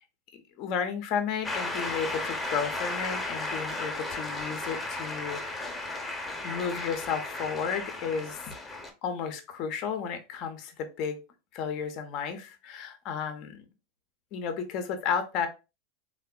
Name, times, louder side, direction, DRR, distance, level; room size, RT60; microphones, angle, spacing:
voice 1, 0.3-5.8 6.4-8.5 9.0-11.2 11.5-13.6 14.3-15.5, left 6 dB, 50° left, 7 dB, 0.5 m, -33 dB
Shout / Cheering / Applause, 1.4-8.9, left 2 dB, 10° left, 0.7 m, -34 dB
3.4 x 2.1 x 2.2 m, 0.29 s
hypercardioid pair, 90°, 0 cm